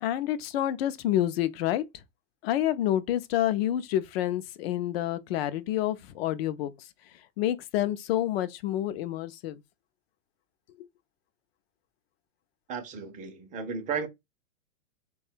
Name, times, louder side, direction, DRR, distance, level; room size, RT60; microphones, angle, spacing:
voice 1, 0.0-1.8 2.4-6.7 7.4-9.6, left 12 dB, 50° left, 0.6 m, -28 dB
voice 2, 12.7-14.1, right 6 dB, 20° right, 0.5 m, -34 dB
3.2 x 2.3 x 4.3 m
hypercardioid pair, 130°, 39 cm